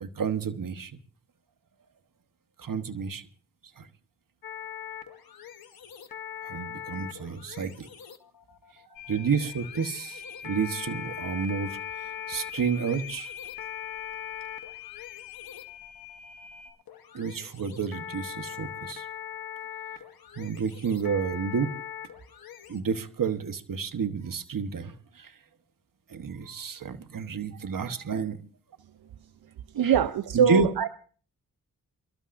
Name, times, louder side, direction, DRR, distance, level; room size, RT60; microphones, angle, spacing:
voice 1, 0.0-1.0 2.6-3.2 3.8-3.9 6.4-7.9 9.1-11.8 12.3-13.3 17.1-19.1 20.4-21.7 22.7-25.3 26.1-28.4 29.8-29.9 30.3-30.7, right 5 dB, 65° right, 9 dB, 1.2 m, -30 dB
sound 1, 4.4-22.8, left 9 dB, 75° left, 1.2 m, -42 dB
sound 2, 8.9-16.7, left 10 dB, 35° left, 5.4 m, -43 dB
voice 2, 29.7-30.9, right 8 dB, 85° right, 11 dB, 0.7 m, -23 dB
27.5 x 13.0 x 2.6 m, 0.42 s
cardioid pair, 50°, 36 cm